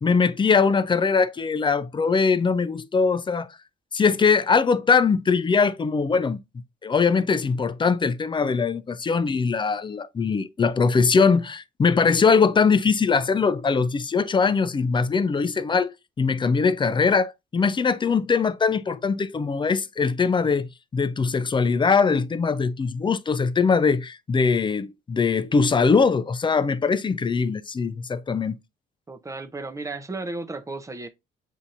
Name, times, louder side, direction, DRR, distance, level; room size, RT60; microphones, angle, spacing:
voice 1, 0.0-3.5 3.9-6.4 6.8-20.7 20.9-28.6, left 5 dB, 25° left, 0.4 m, -21 dB
voice 2, 29.1-31.1, right 2 dB, 15° right, 0.6 m, -34 dB
7.3 x 2.7 x 2.6 m
cardioid pair, 90°, 20 cm